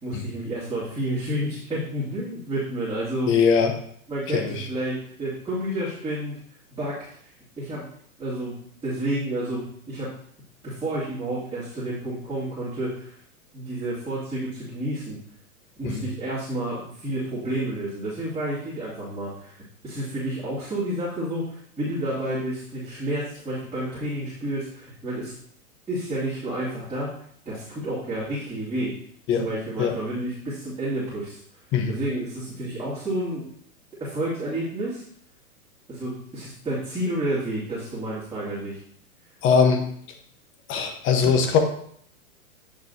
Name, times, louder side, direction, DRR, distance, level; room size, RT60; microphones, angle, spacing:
voice 1, 0.0-3.4 4.1-6.4 6.7-7.0 7.2-7.3 7.6-7.9 8.2-10.1 10.6-13.1 13.5-15.2 15.8-25.3 25.9-27.1 27.5-28.9 29.3-31.4 31.9-33.5 34.0-35.0 35.9-38.8, right 1 dB, 10° right, -11 dB, 2.4 m, -30 dB
voice 2, 3.3-3.7 4.3-4.7 15.8-16.0 29.3-29.4 29.8-29.9 31.7-32.0 39.4-39.9 40.7-41.6, left 6 dB, 25° left, 5 dB, 1.1 m, -21 dB
8.7 x 6.2 x 2.7 m, 0.63 s
hypercardioid pair, 120°, 44 cm